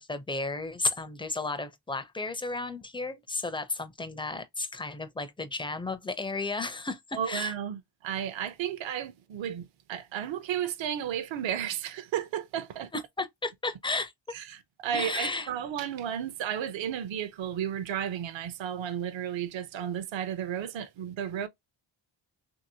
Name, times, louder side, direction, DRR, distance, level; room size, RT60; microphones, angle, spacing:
voice 1, 0.0-7.5 12.9-14.4 14.9-15.5, left 3 dB, 10° left, 0.4 m, -33 dB
voice 2, 7.1-12.9 14.3-21.5, right 9 dB, 65° right, 0.7 m, -33 dB
2.9 x 2.8 x 2.7 m
cardioid pair, 90°, 49 cm